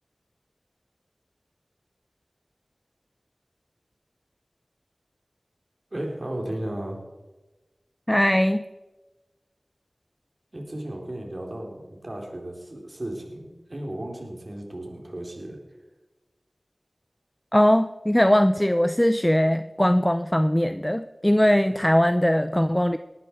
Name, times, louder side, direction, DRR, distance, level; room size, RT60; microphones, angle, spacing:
voice 1, 5.9-7.0 10.5-15.6, right 1 dB, 45° right, 1 dB, 3.8 m, -35 dB
voice 2, 8.1-8.7 17.5-23.0, equal, 10° left, 11 dB, 0.6 m, -20 dB
20.0 x 13.0 x 4.7 m, 1.1 s
wide cardioid pair, 45°, 0 cm